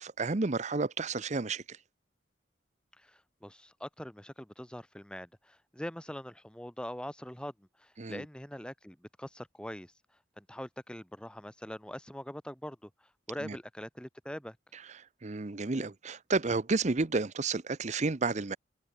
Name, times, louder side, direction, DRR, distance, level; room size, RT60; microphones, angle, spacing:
voice 1, 0.0-1.8 8.0-8.2 13.4-13.6 14.7-18.6, right 3 dB, 40° right, 0.8 m, -31 dB
voice 2, 3.0-7.5 7.8-9.9 10.4-12.9 13.3-14.6, equal, 5° left, 1.5 m, -43 dB
head